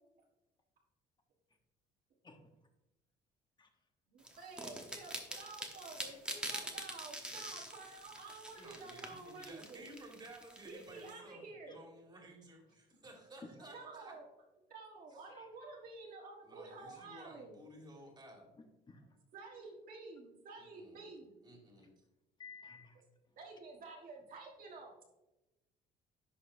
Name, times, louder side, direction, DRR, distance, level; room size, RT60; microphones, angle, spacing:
voice 1, 4.1-9.8 10.6-11.8 13.7-14.3 14.7-17.6 19.3-21.4 23.4-24.9, right 3 dB, 55° right, -1 dB, 1.5 m, -51 dB
sound 1, 4.2-11.1, right 1 dB, 5° right, 1.1 m, -45 dB
voice 2, 8.6-14.2 16.4-18.6 20.6-21.0 21.4-21.9, right 1 dB, 25° right, 1 dB, 2.1 m, -55 dB
voice 3, 18.9-19.2 21.8-21.9 22.4-23.0, left 4 dB, 25° left, 5 dB, 1.0 m, -55 dB
10.5 x 5.2 x 2.7 m, 0.98 s
cardioid pair, 110°, 17 cm